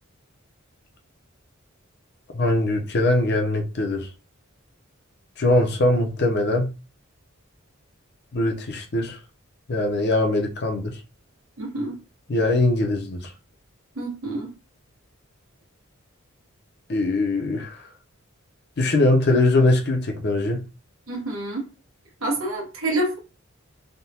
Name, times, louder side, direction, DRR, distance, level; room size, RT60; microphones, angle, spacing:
voice 1, 2.3-4.1 5.4-6.7 8.3-9.2 9.7-10.9 12.3-13.2 16.9-17.8 18.8-20.6, left 2 dB, 55° left, 0.7 m, -21 dB
voice 2, 11.6-12.0 14.0-14.5 21.1-21.7 22.2-23.2, right 1 dB, 80° right, 1.1 m, -27 dB
3.6 x 2.2 x 2.8 m
head